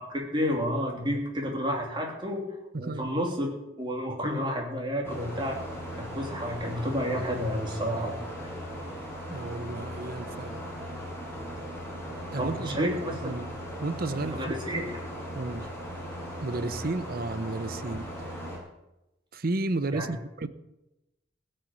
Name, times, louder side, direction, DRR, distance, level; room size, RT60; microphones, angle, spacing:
voice 1, 0.3-2.4 2.8-3.5 3.8-5.6 6.0-8.1 8.4-8.5 12.4-13.1 14.2-14.8 19.9-20.1, equal, 25° right, 0 dB, 3.1 m, -30 dB
voice 2, 2.7-3.1 9.3-10.6 11.9-12.0 12.3-13.5 13.8-14.8 15.3-15.7 16.4-18.4 19.3-20.5, right 2 dB, 50° right, 13 dB, 0.8 m, -33 dB
sound 1, 5.0-18.6, equal, 10° left, 4.7 m, -38 dB
16.0 x 6.6 x 9.4 m, 0.96 s
head